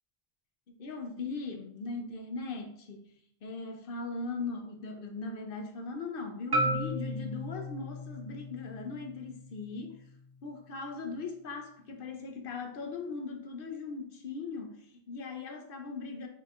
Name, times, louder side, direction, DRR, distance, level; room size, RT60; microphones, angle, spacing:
voice 1, 0.8-3.1 3.4-10.0 10.4-16.3, left 3 dB, 65° left, 4 dB, 0.8 m, -39 dB
Marimba xylophone, 6.5-10.7, equal, 35° right, 0.4 m, -35 dB
5.8 x 3.1 x 2.4 m, 0.68 s
omnidirectional pair, 1.0 m